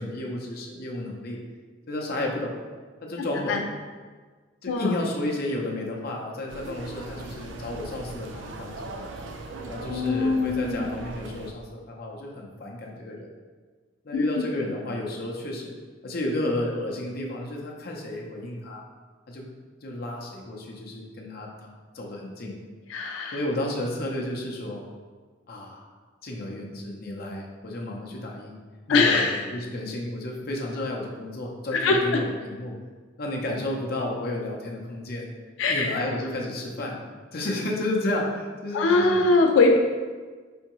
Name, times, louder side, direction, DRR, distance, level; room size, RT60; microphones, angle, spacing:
voice 1, 0.0-1.4 1.9-2.6 3.0-3.6 4.6-9.1 9.7-13.3 14.0-15.7 16.0-18.8 19.3-19.4 19.8-21.5 21.9-22.6 23.3-24.8 25.5-25.9 26.2-28.6 28.9-32.7 33.2-35.3 35.7-37.0 37.3-39.2, left 1 dB, 55° left, -1 dB, 0.7 m, -32 dB
voice 2, 4.7-5.0 9.9-10.9 14.1-14.4 22.9-23.4 28.9-29.4 31.7-32.2 35.6-36.0 38.7-39.8, left 3 dB, 90° left, 3 dB, 0.4 m, -22 dB
sound 1, 6.5-11.5, right 2 dB, 80° right, 0.4 m, -39 dB
4.6 x 3.5 x 3.0 m, 1.4 s
head